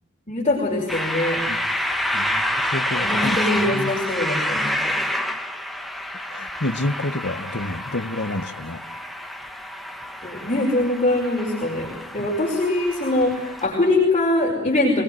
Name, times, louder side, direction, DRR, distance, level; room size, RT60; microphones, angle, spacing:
voice 1, 0.3-1.4 2.9-4.9 10.2-15.0, left 2 dB, 25° left, -4 dB, 5.8 m, -22 dB
sound 1, 0.9-13.7, left 1 dB, ahead, 1.7 m, -28 dB
voice 2, 2.1-3.9 6.3-8.8 12.2-12.3, left 2 dB, 50° left, 9 dB, 1.4 m, -29 dB
24.5 x 20.5 x 7.9 m, 0.86 s
head